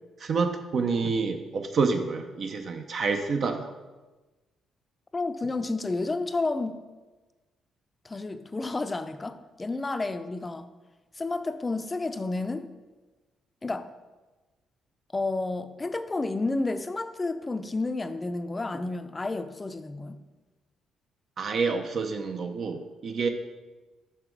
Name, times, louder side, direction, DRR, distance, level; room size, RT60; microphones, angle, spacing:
voice 1, 0.2-3.7 21.4-23.3, right 4 dB, 55° right, 5 dB, 0.6 m, -28 dB
voice 2, 5.1-6.8 8.0-10.7 11.1-12.7 13.6-13.9 15.1-20.2, left 3 dB, 25° left, 10 dB, 0.5 m, -31 dB
6.0 x 5.7 x 4.6 m, 1.2 s
cardioid pair, 90°, 0 cm